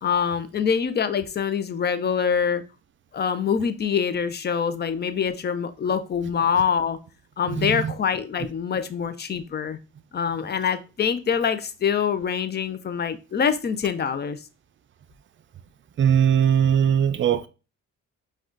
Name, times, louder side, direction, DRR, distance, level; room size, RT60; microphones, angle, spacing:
voice 1, 0.0-2.6 3.1-7.0 7.4-9.8 10.1-14.4, left 7 dB, 35° left, 0.6 m, -25 dB
voice 2, 16.0-17.5, right 8 dB, 40° right, 0.5 m, -19 dB
4.8 x 2.4 x 3.8 m
cardioid pair, 90°, 30 cm